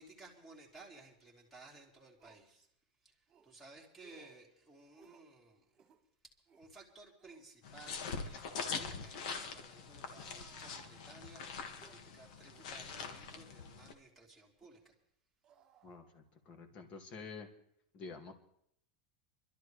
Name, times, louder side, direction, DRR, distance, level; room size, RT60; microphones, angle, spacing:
voice 1, 0.0-2.7 3.0-3.1 3.4-5.7 6.6-14.9, right 3 dB, 5° left, -1 dB, 2.5 m, -57 dB
sound 1, 1.5-1.6 2.2-2.5 3.3-3.5 4.0-4.4 4.9-5.3 5.7-6.0 6.5-6.7 7.2-7.4 8.3-8.7 9.2-9.6 10.1-11.3 11.8-12.0 12.5-12.8 13.2-13.4 13.8-14.0 14.6-14.8 15.4-16.5 16.8-17.0, right 7 dB, 25° right, 1.9 m, -64 dB
sound 2, 7.6-13.9, left 5 dB, 65° left, 1.8 m, -43 dB
voice 2, 15.8-17.5 17.9-18.3, left 4 dB, 30° left, 5 dB, 2.1 m, -49 dB
25.0 x 12.5 x 3.3 m, 0.70 s
supercardioid pair, 165°, 4 cm